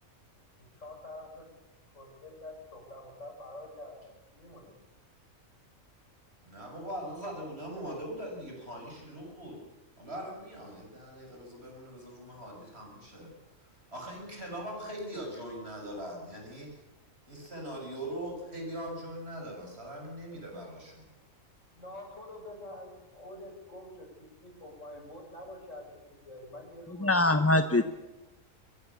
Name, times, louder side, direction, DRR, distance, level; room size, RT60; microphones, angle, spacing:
voice 1, 0.6-1.5 1.9-4.1 4.3-4.7 21.7-27.9, left 1 dB, 65° left, 1 dB, 7.1 m, -47 dB
voice 2, 6.4-9.6 10.0-13.3 13.9-16.8 17.3-21.1, right 1 dB, 50° right, 1 dB, 7.0 m, -41 dB
voice 3, 27.0-27.8, left 2 dB, 15° left, 9 dB, 0.6 m, -23 dB
23.0 x 21.0 x 7.1 m, 1.0 s
omnidirectional pair, 1.4 m